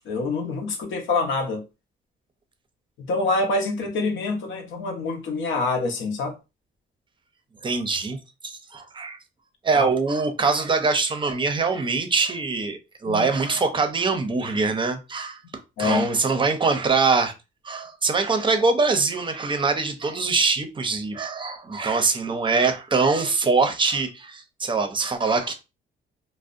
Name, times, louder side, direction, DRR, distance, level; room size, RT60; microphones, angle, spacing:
voice 1, 0.1-1.6 3.0-6.3 9.7-9.9 13.1-13.3 15.8-16.1, left 3 dB, 75° left, 0.7 m, -26 dB
voice 2, 7.6-9.2 9.6-17.3 17.6-25.5, right 4 dB, 25° right, 0.5 m, -23 dB
2.6 x 2.1 x 2.4 m
cardioid pair, 90°, 20 cm